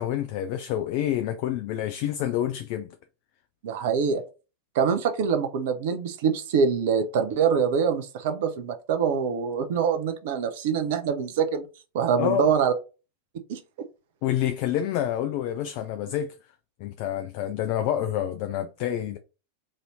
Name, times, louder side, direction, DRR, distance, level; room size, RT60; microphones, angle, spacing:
voice 1, 0.0-2.9 12.2-12.5 14.2-16.4 16.8-19.2, left 11 dB, 45° left, 0.4 m, -28 dB
voice 2, 3.6-4.2 4.7-11.6 11.9-12.7 13.5-13.6, right 6 dB, 50° right, 0.5 m, -24 dB
3.1 x 2.6 x 4.1 m
figure-of-eight pair, 90°, 0 cm